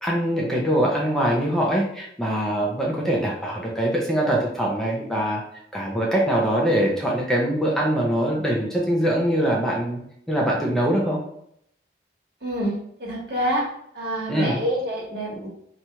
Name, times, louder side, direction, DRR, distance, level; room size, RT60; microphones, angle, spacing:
voice 1, 0.0-5.4 5.7-10.0 10.3-11.2 14.3-14.6, right 1 dB, 5° left, -3 dB, 0.5 m, -23 dB
voice 2, 12.4-12.7 13.0-13.6 13.9-15.5, equal, 65° right, -3 dB, 1.3 m, -26 dB
2.9 x 2.4 x 4.2 m, 0.71 s
head